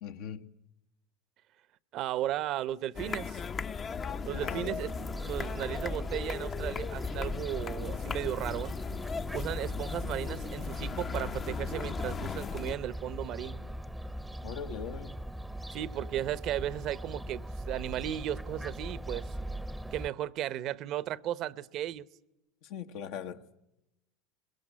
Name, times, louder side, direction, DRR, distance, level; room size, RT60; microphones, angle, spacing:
voice 1, 0.0-0.5 4.3-4.9 14.4-15.2 22.6-23.5, left 8 dB, 65° left, 1.3 m, -40 dB
voice 2, 1.9-3.4 4.3-4.9 5.2-8.8 9.3-13.6 15.7-19.3 19.9-22.1, right 12 dB, 55° right, 0.9 m, -35 dB
sound 1, 2.9-12.8, left 5 dB, 30° left, 0.8 m, -37 dB
Fowl, 4.9-20.1, right 1 dB, 5° right, 0.8 m, -40 dB
23.0 x 21.0 x 9.8 m
hypercardioid pair, 95°, 0 cm